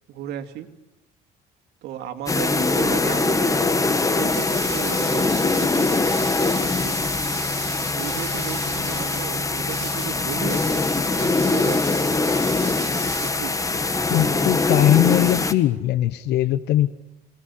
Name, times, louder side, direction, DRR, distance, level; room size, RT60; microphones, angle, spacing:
voice 1, 0.1-0.7 1.8-6.1 6.5-7.1 7.8-10.7 11.1-12.3 13.2-13.7, right 11 dB, 80° right, 5 dB, 2.7 m, -35 dB
sound 1, 2.3-15.5, left 3 dB, 20° left, 1.7 m, -22 dB
sound 2, 4.3-13.3, right 7 dB, 40° right, 3.5 m, -38 dB
voice 2, 14.1-16.9, left 13 dB, 80° left, 13 dB, 0.9 m, -20 dB
28.0 x 20.0 x 9.8 m, 1.0 s
cardioid pair, 110°, 17 cm